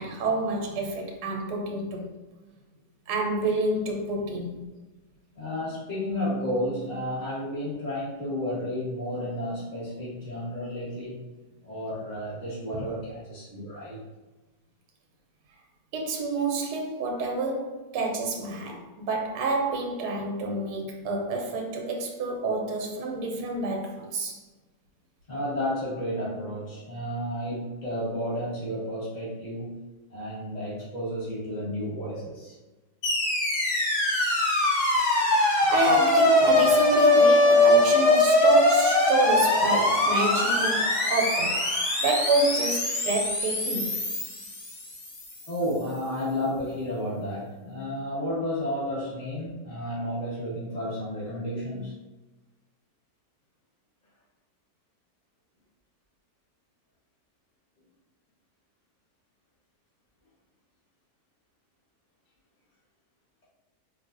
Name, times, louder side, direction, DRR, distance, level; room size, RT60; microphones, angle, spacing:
voice 1, 0.0-2.2 3.1-4.6 12.7-12.9 15.9-24.4 35.7-41.6 42.0-44.0, right 3 dB, 80° right, 1 dB, 1.2 m, -28 dB
voice 2, 5.3-11.2 11.6-14.0 25.3-29.8 30.1-32.5 45.5-52.0, equal, 30° left, -8 dB, 1.2 m, -32 dB
sound 1, 33.0-45.3, left 2 dB, 50° left, 0.9 m, -22 dB
4.7 x 2.4 x 2.5 m, 1.2 s
omnidirectional pair, 1.7 m